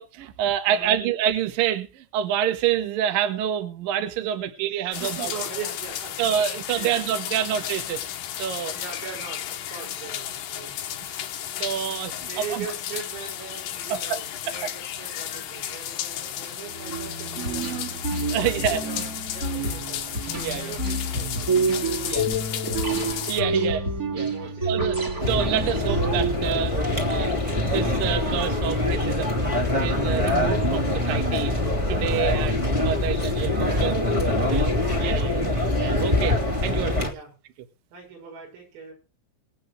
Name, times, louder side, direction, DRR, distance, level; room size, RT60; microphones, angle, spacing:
voice 1, 0.0-5.3 6.2-8.1 8.4-8.7 11.0-11.2 11.6-12.7 13.9-14.2 18.3-18.8 20.4-20.7 22.0-22.3 23.3-23.8 24.1-24.3 24.7-29.4 29.8-31.5 31.9-33.9 34.5-34.7 35.0-35.5 35.8-37.1, right 9 dB, 60° right, 2.6 m, -27 dB
voice 2, 0.7-1.0 4.8-6.5 6.7-7.0 8.7-11.1 12.2-18.0 18.4-20.0 20.5-23.2 23.5-23.7 24.3-25.3 32.1-32.7 33.6-34.1 34.4-35.5 37.1-37.3 37.9-38.9, right 5 dB, 85° right, 9.0 m, -41 dB
sound 1, 4.9-23.4, left 11 dB, 70° left, 2.2 m, -34 dB
sound 2, 16.7-26.4, right 2 dB, 25° right, 2.2 m, -28 dB
sound 3, 25.2-37.1, left 2 dB, 10° right, 1.7 m, -24 dB
22.0 x 8.8 x 3.3 m
omnidirectional pair, 5.8 m